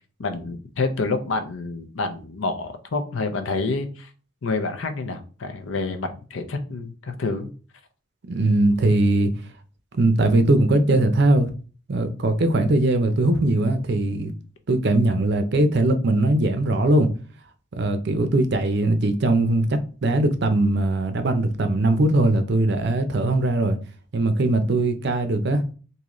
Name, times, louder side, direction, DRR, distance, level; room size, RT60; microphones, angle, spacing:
voice 1, 0.2-4.1 4.4-7.5, left 3 dB, 70° left, 0.6 m, -28 dB
voice 2, 8.3-9.3 9.9-11.5 11.9-14.3 14.7-17.1 17.7-23.8 24.1-25.6, right 2 dB, 55° right, 0.5 m, -20 dB
3.8 x 2.7 x 3.0 m
head